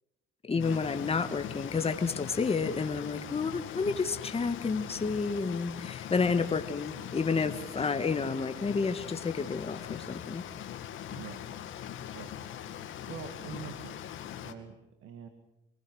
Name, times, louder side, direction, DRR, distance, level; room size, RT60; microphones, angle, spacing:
voice 1, 0.5-10.4, left 4 dB, 30° left, 8 dB, 1.7 m, -30 dB
sound 1, 0.6-14.5, left 10 dB, 80° left, 2.1 m, -41 dB
voice 2, 13.1-14.2 14.4-14.7 15.0-15.3, right 7 dB, 90° right, 7 dB, 2.2 m, -44 dB
24.0 x 19.5 x 6.4 m, 0.94 s
cardioid pair, 90°, 20 cm